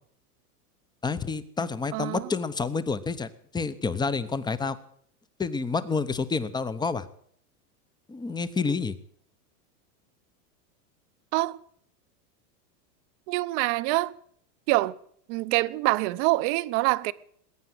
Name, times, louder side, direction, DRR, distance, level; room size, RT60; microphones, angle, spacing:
voice 1, 1.0-4.8 5.4-7.1 8.1-9.0, left 4 dB, 10° left, 0.8 m, -29 dB
voice 2, 1.9-2.2 11.3-11.6 13.3-14.1 14.7-14.9 15.3-17.1, right 21 dB, 50° right, 0.8 m, -25 dB
20.5 x 9.1 x 7.8 m
supercardioid pair, 125°, 48 cm